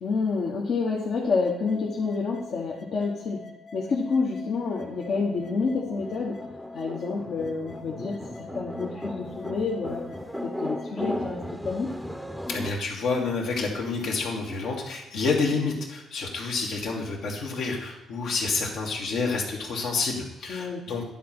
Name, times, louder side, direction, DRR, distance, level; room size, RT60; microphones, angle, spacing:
voice 1, 0.0-3.4 3.7-6.4 6.7-10.1 10.4-12.0 20.5-20.9, left 4 dB, 65° left, -3 dB, 1.1 m, -28 dB
sound 1, 1.2-11.3, left 4 dB, 35° left, 1.0 m, -46 dB
sound 2, 4.7-12.7, equal, ahead, 0.6 m, -36 dB
voice 2, 12.5-21.0, left 4 dB, 80° left, -1 dB, 1.9 m, -28 dB
10.0 x 3.8 x 6.0 m, 1.0 s
cardioid pair, 90°, 0 cm